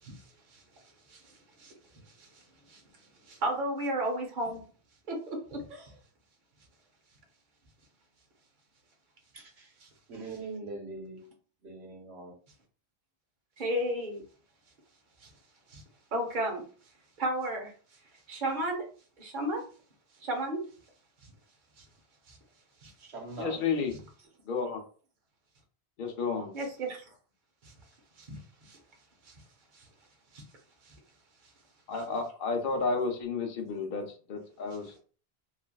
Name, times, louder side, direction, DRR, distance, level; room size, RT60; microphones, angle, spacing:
voice 1, 3.3-4.6 5.1-5.9 13.6-14.2 15.7-15.8 16.1-16.6 17.2-17.7 18.3-18.8 19.2-19.6 20.2-20.6 22.3-22.4 22.8-22.9 26.5-27.0 28.2-28.4 28.7-28.8 30.3-30.4, right 1 dB, 50° right, 0.9 m, -32 dB
voice 2, 9.3-9.7 10.1-11.2 11.6-12.3 23.0-23.6, right 3 dB, 85° right, 1.2 m, -42 dB
voice 3, 23.4-23.9 24.5-24.8 26.0-26.5 31.9-35.0, left 4 dB, 55° left, 0.7 m, -32 dB
3.2 x 2.4 x 2.2 m
omnidirectional pair, 1.1 m